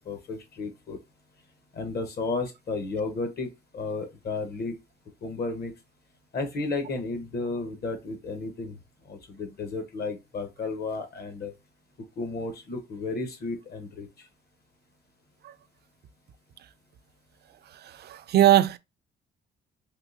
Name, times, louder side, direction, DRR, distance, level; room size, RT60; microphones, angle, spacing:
voice 1, 0.0-1.0 1.7-4.8 5.2-5.7 6.3-8.8 9.1-11.5 12.2-14.1, left 3 dB, 55° left, 1.0 m, -33 dB
voice 2, 17.7-18.8, right 12 dB, 55° right, 0.4 m, -21 dB
3.6 x 2.7 x 2.6 m
cardioid pair, 90°, 20 cm